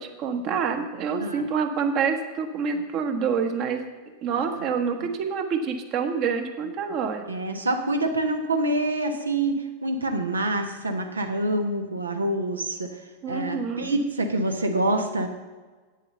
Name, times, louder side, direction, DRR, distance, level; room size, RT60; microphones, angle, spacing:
voice 1, 0.0-3.8 4.2-7.3 13.2-14.0, right 6 dB, 40° right, 5 dB, 1.3 m, -27 dB
voice 2, 7.3-9.6 9.8-12.9 13.3-15.3, right 1 dB, 75° right, 5 dB, 1.3 m, -26 dB
8.7 x 7.2 x 7.8 m, 1.3 s
figure-of-eight pair, 90°, 0 cm